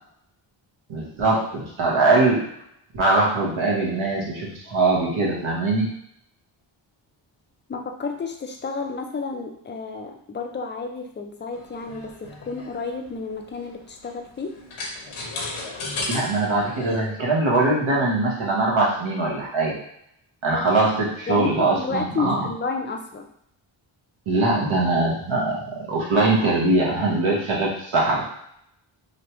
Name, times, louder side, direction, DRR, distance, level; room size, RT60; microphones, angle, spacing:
voice 1, 0.9-2.4 2.9-5.9 16.1-19.7 20.4-22.5 24.3-28.2, right 2 dB, 75° right, -4 dB, 1.1 m, -22 dB
voice 2, 7.7-14.5 20.5-20.8 21.3-23.3, left 4 dB, 25° left, 4 dB, 0.3 m, -31 dB
sound 1, 11.5-17.0, left 2 dB, 90° left, 0.8 m, -35 dB
3.1 x 2.2 x 2.9 m, 0.71 s
wide cardioid pair, 100°, 49 cm